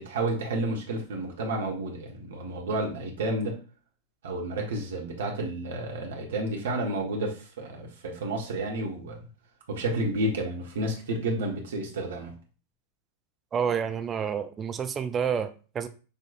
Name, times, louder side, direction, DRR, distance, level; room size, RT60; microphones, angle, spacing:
voice 1, 0.0-3.6 4.2-9.2 9.7-12.3, right 1 dB, 60° right, 0 dB, 1.4 m, -31 dB
voice 2, 13.5-15.9, right 7 dB, 25° right, 9 dB, 0.4 m, -29 dB
6.8 x 3.0 x 2.5 m, 0.37 s
figure-of-eight pair, 90°, 0 cm